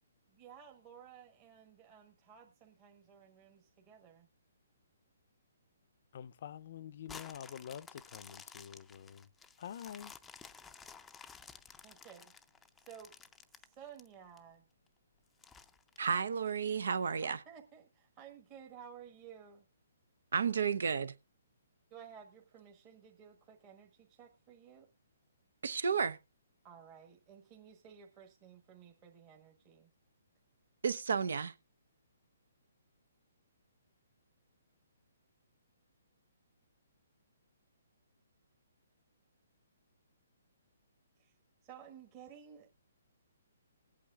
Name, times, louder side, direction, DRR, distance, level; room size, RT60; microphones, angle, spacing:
voice 1, 0.3-4.3 11.8-12.3 12.8-13.2 13.6-14.6 17.2-19.6 21.9-24.9 26.6-29.9 41.2-41.3 41.6-42.7, right 8 dB, 30° right, 1.4 m, -55 dB
voice 2, 6.1-9.3 9.6-10.1, left 9 dB, 55° left, 0.5 m, -47 dB
sound 1, 7.1-14.4 14.9-15.0 15.4-16.7 17.2-17.3, left 5 dB, 10° left, 0.5 m, -54 dB
voice 3, 16.0-17.4 20.3-21.1 25.6-26.2 30.8-31.5, right 6 dB, 75° right, 0.7 m, -32 dB
22.0 x 8.5 x 2.4 m
hypercardioid pair, 145°, 0 cm